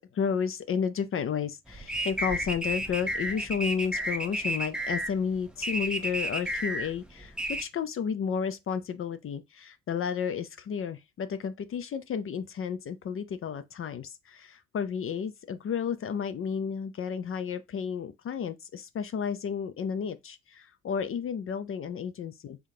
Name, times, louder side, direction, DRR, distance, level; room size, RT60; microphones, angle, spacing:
voice 1, 0.1-22.6, left 7 dB, 45° left, 0.5 m, -32 dB
sound 1, 1.7-7.6, right 1 dB, 5° right, 0.7 m, -32 dB
3.7 x 3.5 x 2.7 m
cardioid pair, 90°, 30 cm